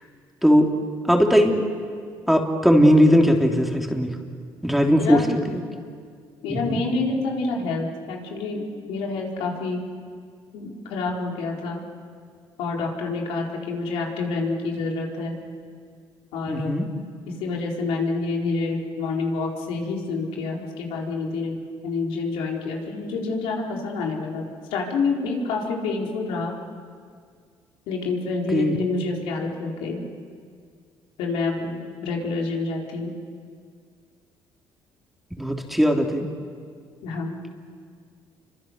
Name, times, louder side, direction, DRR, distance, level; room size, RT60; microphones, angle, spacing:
voice 1, 1.1-1.6 2.3-4.1 4.6-5.6 6.5-6.8 16.5-16.9 28.5-28.7 35.4-36.3, equal, ahead, 2 dB, 3.4 m, -19 dB
voice 2, 6.4-8.6 8.9-9.8 10.5-11.8 12.6-15.3 16.3-16.7 17.4-21.6 21.8-24.5 24.7-26.5 27.9-30.0 31.2-33.1 37.0-37.4, left 3 dB, 85° left, -1 dB, 4.4 m, -27 dB
29.0 x 25.0 x 6.7 m, 2.1 s
supercardioid pair, 80°, 10 cm